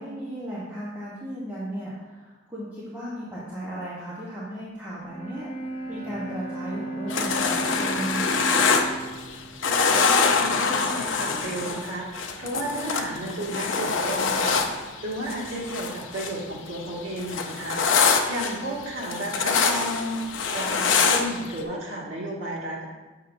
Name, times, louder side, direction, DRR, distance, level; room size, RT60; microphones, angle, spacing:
voice 1, 0.0-5.5 5.9-8.5, right 1 dB, 10° right, -9 dB, 1.0 m, -35 dB
Bowed string instrument, 5.0-11.0, right 2 dB, 30° left, 0.5 m, -36 dB
sound 1, 7.1-9.4 9.6-16.4 16.7-21.6, left 5 dB, 80° left, 0.5 m, -24 dB
voice 2, 9.6-17.8 18.3-20.2 20.5-22.8, right 1 dB, 85° right, -5 dB, 1.8 m, -33 dB
7.2 x 5.7 x 2.6 m, 1.2 s
head